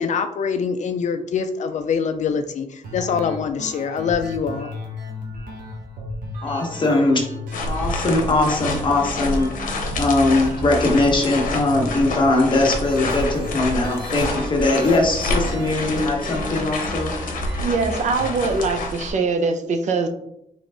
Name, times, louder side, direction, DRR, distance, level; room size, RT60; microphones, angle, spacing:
voice 1, 0.0-4.7, left 6 dB, 60° left, 7 dB, 0.4 m, -24 dB
sound 1, 2.8-18.8, left 1 dB, 90° right, 1.3 m, -34 dB
voice 2, 6.4-7.2 7.6-9.5 10.0-17.1, left 2 dB, 35° left, 0 dB, 1.0 m, -20 dB
sound 2, 7.5-19.1, left 2 dB, 80° left, 0.8 m, -28 dB
voice 3, 17.6-20.1, right 4 dB, 60° right, 6 dB, 0.5 m, -22 dB
3.9 x 3.5 x 3.3 m, 0.78 s
wide cardioid pair, 150°, 14 cm